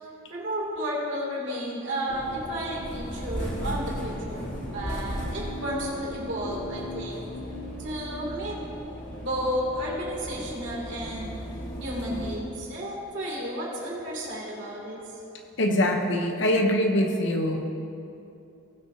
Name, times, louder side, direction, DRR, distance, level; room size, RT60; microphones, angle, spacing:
voice 1, 0.3-7.2 7.8-8.6 9.2-11.4 11.8-15.0, equal, 55° right, -4 dB, 2.8 m, -32 dB
sound 1, 2.1-12.4, equal, 35° left, 1.8 m, -36 dB
voice 2, 15.6-17.7, left 1 dB, 60° left, 4 dB, 0.9 m, -23 dB
19.5 x 7.6 x 2.8 m, 2.7 s
head